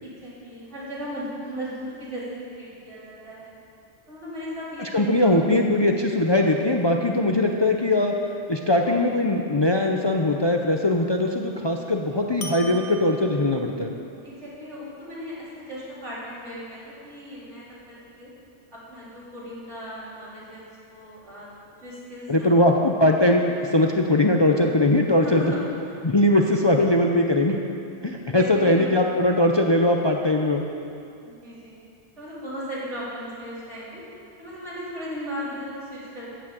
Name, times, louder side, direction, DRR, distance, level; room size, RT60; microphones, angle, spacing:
voice 1, 0.0-3.5 4.1-5.3 14.2-18.3 18.7-22.5 25.1-25.9 28.0-28.9 31.2-31.7 32.2-34.0 34.4-36.3, equal, 80° right, -9 dB, 4.2 m, -36 dB
voice 2, 4.8-8.1 8.5-13.9 22.3-25.4 26.0-27.6 28.0-30.6, left 1 dB, 30° left, 2 dB, 0.6 m, -21 dB
sound 1, 8.8-9.5 12.4-13.8, equal, 65° left, 1.4 m, -40 dB
14.0 x 6.2 x 7.7 m, 2.5 s
omnidirectional pair, 1.2 m